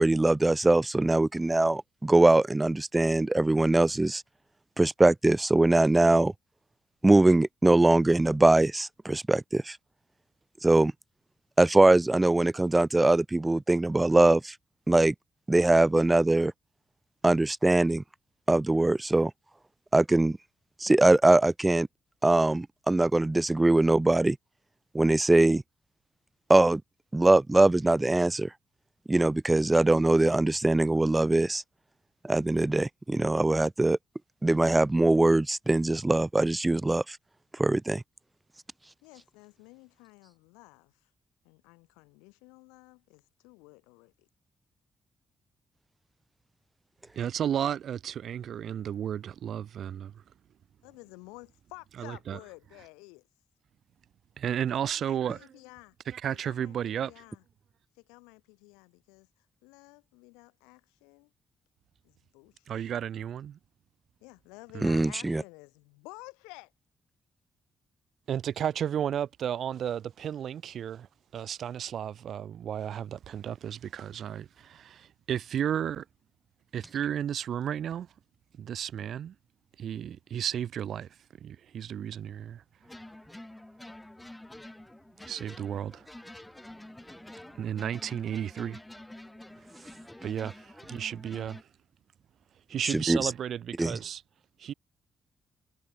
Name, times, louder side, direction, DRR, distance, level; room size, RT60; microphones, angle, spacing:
voice 1, 0.0-4.2 4.8-6.3 7.0-9.8 10.6-10.9 11.6-14.5 14.9-15.1 15.5-16.5 17.2-18.0 18.5-19.3 19.9-20.4 20.8-21.9 22.2-24.4 24.9-25.6 26.5-26.8 27.1-28.5 29.1-31.6 32.2-34.0 34.4-37.2 37.5-38.0 64.8-65.4 92.8-93.3 93.8-94.0, right 2 dB, 20° right, 0.4 m, -22 dB
voice 2, 39.0-41.1 41.4-44.3 50.8-53.3 54.9-55.9 56.4-57.4 57.9-61.3 62.0-62.7 64.2-66.7, left 28 dB, 90° left, 6.6 m, -52 dB
voice 3, 47.2-50.2 52.0-52.4 54.4-55.5 56.1-57.1 62.7-63.6 64.7-65.0 68.3-71.1 71.3-76.0 76.7-78.1 78.6-79.3 79.8-81.1 81.4-82.6 85.2-86.1 87.6-88.8 89.8-91.7 92.7-94.2 94.6-94.7, right 9 dB, 70° right, 0.9 m, -33 dB
sound 1, 82.8-91.6, left 1 dB, 15° left, 3.1 m, -48 dB
hypercardioid pair, 45°, 0 cm